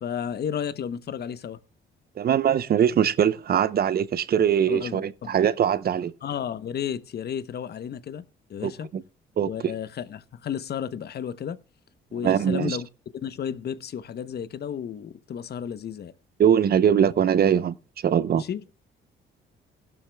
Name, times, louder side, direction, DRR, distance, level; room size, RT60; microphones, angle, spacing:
voice 1, 0.0-1.6 4.7-5.3 6.2-8.2 8.5-8.9 9.4-11.6 12.1-12.9 13.1-16.1 18.3-18.6, left 8 dB, 55° left, 0.9 m, -32 dB
voice 2, 2.2-6.1 8.6-9.0 9.4-9.7 12.2-12.8 16.4-17.8 18.0-18.4, right 9 dB, 50° right, 0.7 m, -22 dB
16.5 x 12.0 x 2.3 m
cardioid pair, 90°, 20 cm